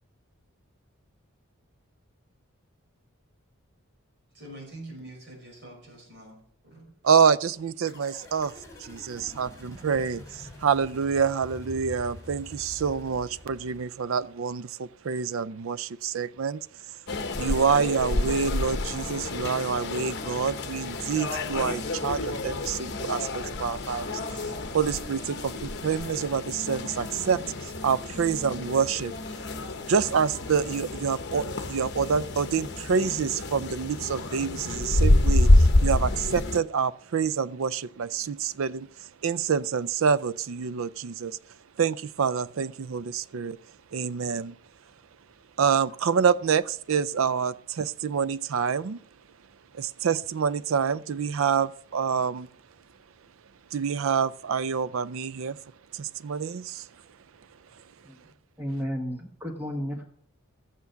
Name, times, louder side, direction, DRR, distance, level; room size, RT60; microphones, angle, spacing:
voice 1, 4.3-6.9, right 1 dB, 50° right, 5.5 m, -45 dB
voice 2, 7.0-8.5 8.8-17.0 17.4-24.5 24.7-29.2 29.9-43.6 43.9-44.6 45.6-49.0 49.7-52.5 53.7-55.6 55.9-56.9 57.7-57.8, right 6 dB, 70° right, 0.4 m, -27 dB
sound 1, 7.9-14.3, left 1 dB, 15° left, 3.3 m, -46 dB
sound 2, 17.1-36.6, left 2 dB, 50° left, 1.0 m, -28 dB
voice 3, 58.6-60.0, equal, 10° right, 1.2 m, -32 dB
14.0 x 9.5 x 5.7 m
head